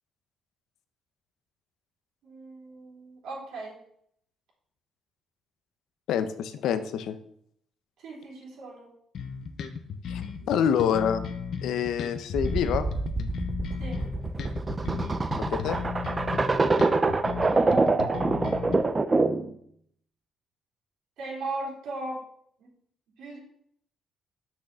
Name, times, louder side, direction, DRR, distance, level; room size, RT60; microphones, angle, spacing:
voice 1, 2.2-3.8 8.0-8.9 13.8-14.0 17.5-18.5 21.2-22.2 22.6-22.7 23.2-23.4, right 2 dB, 85° right, -5 dB, 3.5 m, -37 dB
voice 2, 6.1-7.2 10.0-11.2 11.6-12.8 15.4-15.8, left 8 dB, 80° left, 10 dB, 0.9 m, -27 dB
sound 1, 9.1-18.7, left 6 dB, 65° left, 1.1 m, -35 dB
sound 2, 12.3-19.5, right 3 dB, 25° right, 0.7 m, -25 dB
6.6 x 6.3 x 6.8 m, 0.68 s
cardioid pair, 90°, 0 cm